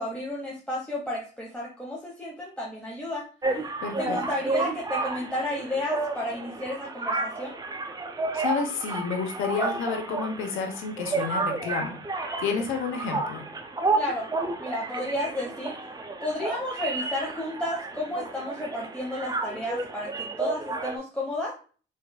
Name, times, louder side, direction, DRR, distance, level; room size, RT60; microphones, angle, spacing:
voice 1, 0.0-3.3 4.0-7.6 14.0-14.3 14.6-15.8 16.2-21.5, left 1 dB, 5° left, -5 dB, 1.1 m, -32 dB
sound 1, 3.4-21.0, right 3 dB, 20° right, 0.6 m, -31 dB
voice 2, 3.8-4.2 8.3-11.9 12.4-13.4, left 5 dB, 90° left, 4 dB, 0.9 m, -30 dB
4.5 x 3.3 x 2.3 m, 0.39 s
cardioid pair, 90°, 20 cm